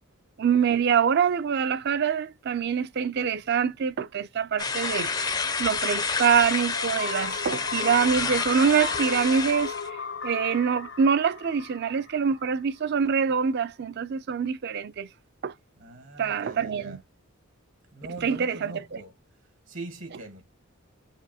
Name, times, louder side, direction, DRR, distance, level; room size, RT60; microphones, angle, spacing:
voice 1, 0.4-5.1 5.6-15.1 15.4-15.5 16.2-17.0 18.2-19.0, right 6 dB, 50° right, 0.4 m, -25 dB
sound 1, 4.6-9.9, left 5 dB, 20° left, 0.4 m, -29 dB
sound 2, 6.8-12.6, left 5 dB, 60° left, 0.6 m, -36 dB
voice 2, 15.8-17.0 17.9-19.1 19.7-20.4, right 2 dB, 65° right, 1.2 m, -41 dB
4.9 x 2.5 x 2.8 m
head